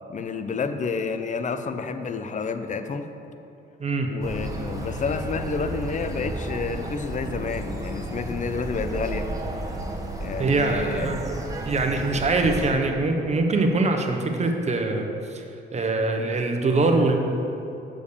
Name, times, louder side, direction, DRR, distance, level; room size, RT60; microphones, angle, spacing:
voice 1, 0.1-3.1 4.1-9.3 10.2-11.1, left 5 dB, 40° left, 9 dB, 0.6 m, -29 dB
sound 1, 4.2-12.7, right 2 dB, 15° right, 1.2 m, -32 dB
voice 2, 10.4-11.4 11.6-15.4 15.7-17.2, right 3 dB, 35° right, 4 dB, 1.0 m, -23 dB
6.9 x 5.1 x 6.8 m, 2.9 s
cardioid pair, 90°, 20 cm